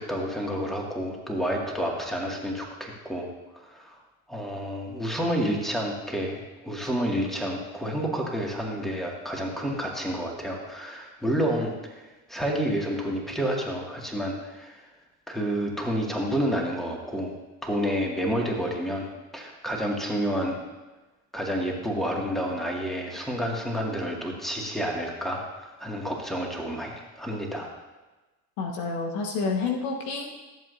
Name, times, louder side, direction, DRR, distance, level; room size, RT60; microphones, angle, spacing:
voice 1, 0.0-3.3 3.5-4.0 4.3-12.0 12.3-14.8 15.3-17.3 17.6-20.6 21.3-27.7, equal, ahead, -1 dB, 2.2 m, -29 dB
voice 2, 28.6-30.4, left 4 dB, 70° left, 1 dB, 1.4 m, -29 dB
14.5 x 7.6 x 2.8 m, 1.2 s
hypercardioid pair, 60°, 45 cm